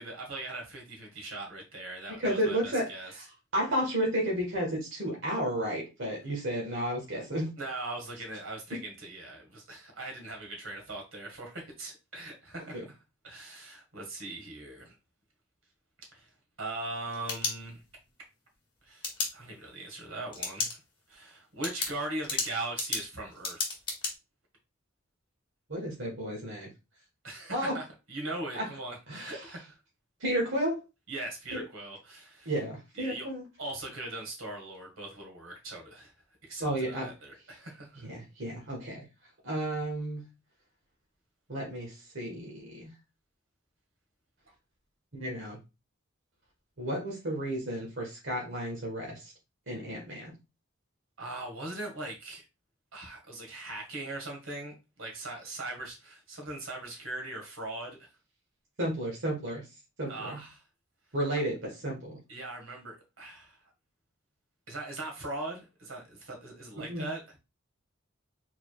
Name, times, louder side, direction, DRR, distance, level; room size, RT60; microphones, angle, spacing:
voice 1, 0.0-3.1 7.6-12.8 13.2-14.9 16.1-16.3 16.6-17.8 18.8-20.8 21.1-23.7 27.2-29.8 31.1-32.5 33.0-33.3 33.6-36.1 36.4-38.1 51.2-52.4 52.9-58.0 60.1-60.6 62.3-63.6 64.7-67.2, right 2 dB, 80° right, 1.8 m, -40 dB
voice 2, 2.2-3.2 3.5-7.5 12.7-12.8 25.7-26.7 27.5-27.8 28.5-28.6 29.1-29.4 30.2-30.8 31.5-31.6 32.4-33.4 36.6-37.1 38.0-39.0 39.4-40.2 41.5-42.9 45.1-45.6 46.8-49.3 49.7-50.3 58.8-59.6 60.0-60.4 61.1-62.2 66.9-67.0, right 1 dB, 65° right, 1.6 m, -32 dB
sound 1, 16.9-18.1 19.0-19.3 20.3-20.7 21.1-21.2 21.6-24.1, left 4 dB, 25° left, 1.4 m, -33 dB
4.8 x 4.1 x 2.4 m
head